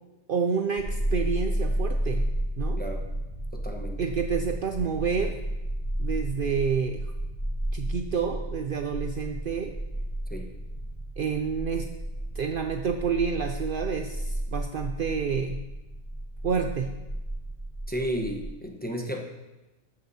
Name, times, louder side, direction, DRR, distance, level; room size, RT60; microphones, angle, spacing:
voice 1, 0.3-2.3 2.6-2.8 4.0-5.3 6.0-7.1 7.7-9.7 11.2-11.9 12.4-15.6 16.4-16.9, right 6 dB, 55° right, 5 dB, 0.7 m, -29 dB
sound 1, 0.8-18.4, right 1 dB, 35° left, 2.6 m, -32 dB
voice 2, 3.5-4.0 10.3-10.5 17.9-19.2, equal, 10° left, 1 dB, 1.0 m, -32 dB
13.0 x 9.5 x 2.8 m, 1.1 s
omnidirectional pair, 1.2 m